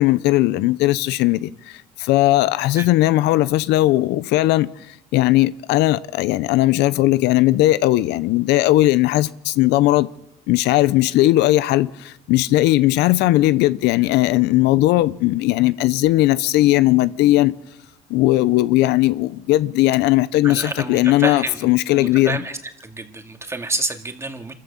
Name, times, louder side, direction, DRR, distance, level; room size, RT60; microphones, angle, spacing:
voice 1, 0.0-10.1 10.5-17.6 18.1-22.4, left 16 dB, 90° left, 0.6 m, -18 dB
voice 2, 20.4-21.6 21.9-22.5 22.8-24.5, right 2 dB, 15° right, 2.2 m, -28 dB
26.0 x 14.5 x 7.0 m
cardioid pair, 110°, 17 cm